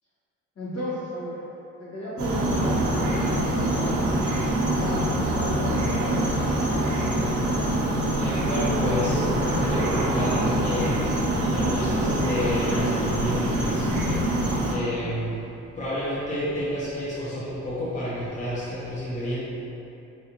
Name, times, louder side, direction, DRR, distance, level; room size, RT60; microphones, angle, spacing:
voice 1, 0.5-1.4 1.8-4.0 4.6-7.0, left 1 dB, 55° left, -8 dB, 1.4 m, -34 dB
sound 1, 2.2-14.7, right 1 dB, 80° right, 0.9 m, -24 dB
voice 2, 8.2-14.1 14.7-19.5, equal, 25° left, -9 dB, 0.9 m, -30 dB
4.0 x 3.2 x 2.9 m, 2.9 s
cardioid pair, 90°, 30 cm